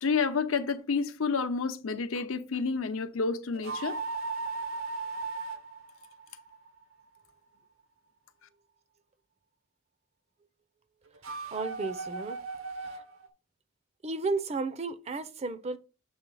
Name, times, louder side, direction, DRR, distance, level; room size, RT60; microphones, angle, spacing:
voice 1, 0.0-4.0, left 5 dB, 80° left, 0.7 m, -29 dB
sound 1, 3.5-6.8 11.1-13.3, right 4 dB, 75° right, 0.8 m, -37 dB
voice 2, 11.5-12.4 12.8-13.0 14.0-15.8, right 3 dB, 30° right, 0.5 m, -33 dB
7.1 x 3.2 x 5.4 m
head